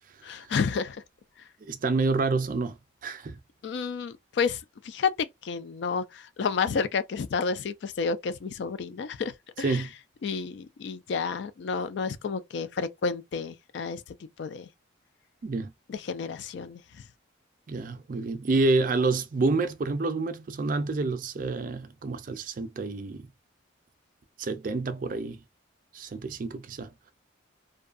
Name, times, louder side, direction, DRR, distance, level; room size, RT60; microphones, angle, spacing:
voice 1, 0.2-1.0 3.6-4.6 4.8-9.8 10.2-14.0 14.4-14.7 15.9-16.8, left 5 dB, 60° left, 0.3 m, -30 dB
voice 2, 1.6-2.8 3.0-3.4 9.6-9.9 15.4-15.7 17.7-23.3 24.4-25.4 25.9-26.9, right 3 dB, 40° right, 0.4 m, -28 dB
2.6 x 2.3 x 2.4 m
head